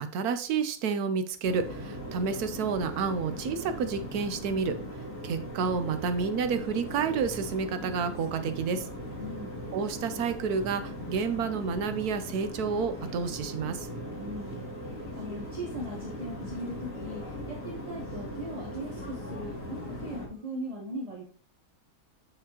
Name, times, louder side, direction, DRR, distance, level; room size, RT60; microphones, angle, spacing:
voice 1, 0.0-4.8 5.2-8.9 9.7-13.9, right 5 dB, 80° right, 10 dB, 1.2 m, -30 dB
sound 1, 1.4-20.3, equal, 55° left, 2.5 m, -39 dB
voice 2, 9.2-9.5 14.1-21.2, equal, 30° right, -2 dB, 1.0 m, -39 dB
8.6 x 4.8 x 2.9 m, 0.41 s
omnidirectional pair, 1.6 m